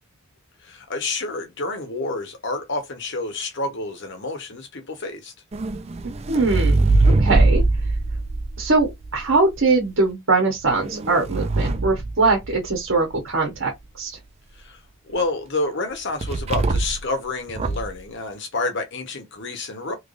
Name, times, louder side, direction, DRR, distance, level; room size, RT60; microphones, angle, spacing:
voice 1, 0.6-5.3 14.6-14.8 15.1-20.0, left 2 dB, 55° left, 1.1 m, -29 dB
sound 1, 5.5-9.6 10.6-12.9 16.2-17.1 17.5-18.0, right 2 dB, 25° right, 0.4 m, -22 dB
voice 2, 6.0-6.9 7.2-7.6 8.6-14.1, right 3 dB, 60° right, 1.1 m, -22 dB
3.3 x 3.1 x 2.5 m
head